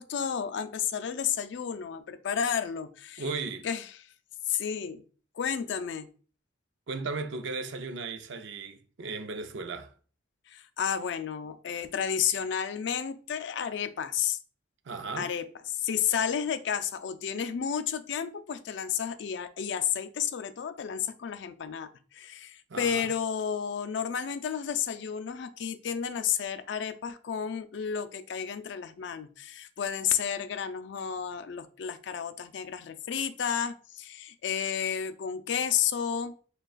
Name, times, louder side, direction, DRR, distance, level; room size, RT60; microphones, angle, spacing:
voice 1, 0.0-3.3 3.6-4.1 4.5-5.0 5.3-6.1 10.5-14.4 15.2-36.3, left 8 dB, 65° left, 0.3 m, -32 dB
voice 2, 3.2-3.7 6.9-9.9 14.9-15.3 22.7-23.1, right 4 dB, 70° right, 0.5 m, -36 dB
6.3 x 2.3 x 2.3 m
head